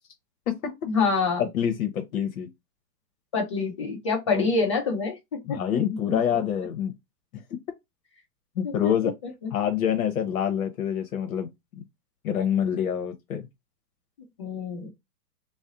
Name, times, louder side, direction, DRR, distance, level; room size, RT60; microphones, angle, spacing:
voice 1, 0.9-1.4 3.3-5.8 6.1-6.4 8.6-8.9 14.4-14.9, left 4 dB, 20° left, 0.4 m, -26 dB
voice 2, 1.5-2.5 4.3-4.5 5.4-6.9 8.6-9.1 9.5-11.5 12.2-13.5, left 9 dB, 60° left, 0.7 m, -26 dB
2.6 x 2.0 x 3.6 m
hypercardioid pair, 125°, 49 cm